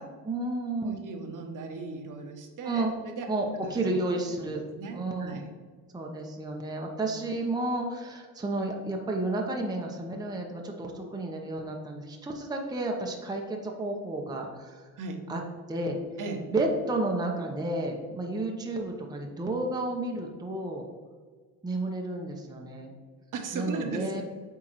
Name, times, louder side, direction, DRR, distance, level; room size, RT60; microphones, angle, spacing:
voice 1, 0.2-1.0 2.6-2.9 3.3-4.6 4.9-5.4 5.9-14.9 15.3-15.4 15.7-16.0 16.4-20.8 21.6-22.9 23.5-24.2, right 2 dB, 10° right, 1 dB, 0.8 m, -31 dB
voice 2, 0.8-3.8 4.3-5.5 15.0-15.2 16.2-16.4 23.3-24.1, right 4 dB, 45° right, 4 dB, 1.1 m, -37 dB
8.2 x 3.7 x 3.1 m, 1.5 s
hypercardioid pair, 70°, 45 cm